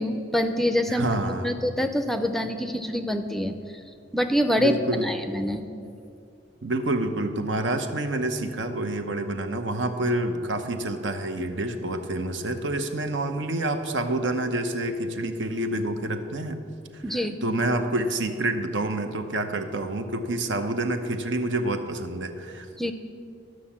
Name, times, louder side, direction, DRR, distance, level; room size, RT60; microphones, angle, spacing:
voice 1, 0.0-1.1 1.4-3.5 4.1-4.7 5.0-5.6 17.0-17.4 22.8-22.9, equal, ahead, 8 dB, 0.5 m, -25 dB
voice 2, 0.9-1.6 4.6-5.1 6.6-16.6 16.9-22.7, right 1 dB, 75° right, 7 dB, 0.9 m, -28 dB
12.0 x 6.4 x 7.2 m, 2.5 s
head